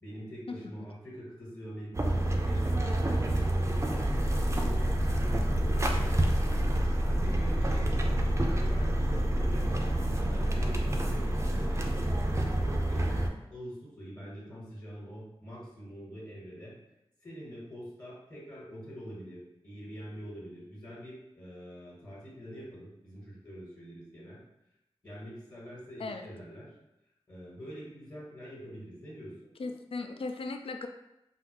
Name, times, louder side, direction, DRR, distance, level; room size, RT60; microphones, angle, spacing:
voice 1, 0.0-4.2 4.5-6.7 7.0-8.1 8.5-12.0 12.2-13.2 13.5-16.7 17.2-24.4 25.0-26.7 27.3-29.3, equal, 35° left, -7 dB, 1.3 m, -45 dB
sound 1, 1.9-13.3, right 1 dB, 25° right, 0.4 m, -28 dB
voice 2, 29.6-30.9, left 3 dB, 65° left, 6 dB, 0.4 m, -37 dB
3.6 x 2.1 x 2.9 m, 0.88 s
wide cardioid pair, 55°, 10 cm